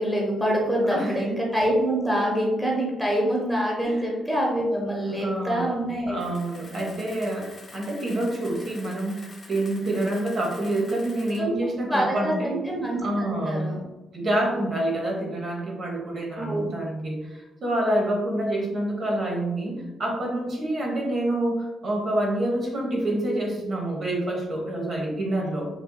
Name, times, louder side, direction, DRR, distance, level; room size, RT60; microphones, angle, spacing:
voice 1, 0.0-6.2 11.4-11.5 11.9-13.8 14.2-14.4 16.3-16.7, equal, ahead, -3 dB, 1.0 m, -25 dB
voice 2, 0.9-1.2 3.8-4.4 5.1-5.7 6.1-12.6 13.0-13.7 14.1-25.7, right 1 dB, 50° right, -1 dB, 1.0 m, -27 dB
Camera, 6.2-11.4, left 3 dB, 40° left, 0.9 m, -47 dB
4.2 x 2.8 x 2.3 m, 1.1 s
cardioid pair, 90°, 0 cm